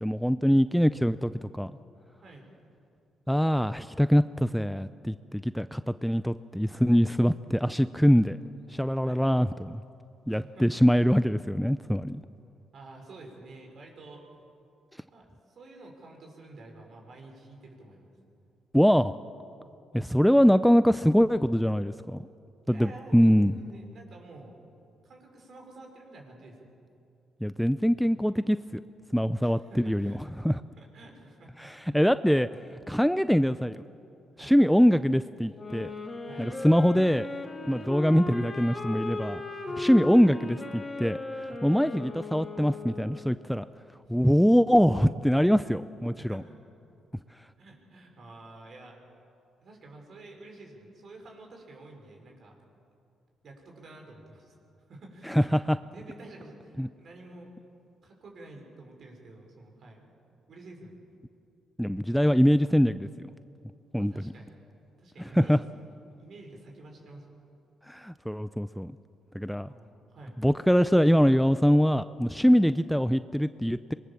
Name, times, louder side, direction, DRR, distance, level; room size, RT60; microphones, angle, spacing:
voice 1, 0.0-1.7 3.3-8.4 8.7-9.8 10.3-12.2 18.7-19.1 19.9-22.2 22.7-23.6 27.4-28.8 29.1-30.6 31.6-33.8 34.4-35.9 36.4-37.3 37.6-39.4 39.8-43.7 44.1-46.4 55.3-55.8 56.8-56.9 61.8-63.1 63.9-64.2 65.3-65.6 67.9-68.9 69.3-69.7 70.4-73.9, equal, ahead, 13 dB, 0.5 m, -23 dB
voice 2, 10.3-10.9 12.7-14.3 15.1-18.1 22.7-24.6 25.0-26.6 29.4-30.2 30.8-31.7 32.3-32.5 34.3-34.5 36.2-36.5 37.7-37.9 39.5-39.8 41.5-41.7 44.1-44.5 46.2-46.4 47.6-49.0 49.6-52.5 53.4-54.6 54.9-55.5 55.9-57.5 58.0-60.1 60.5-61.0 64.0-64.5 65.0-67.4 69.7-70.4 72.4-72.6, right 2 dB, 55° right, 2 dB, 5.7 m, -49 dB
sound 1, 35.5-43.4, left 2 dB, 25° left, 3.3 m, -37 dB
24.5 x 22.0 x 7.2 m, 2.6 s
cardioid pair, 90°, 0 cm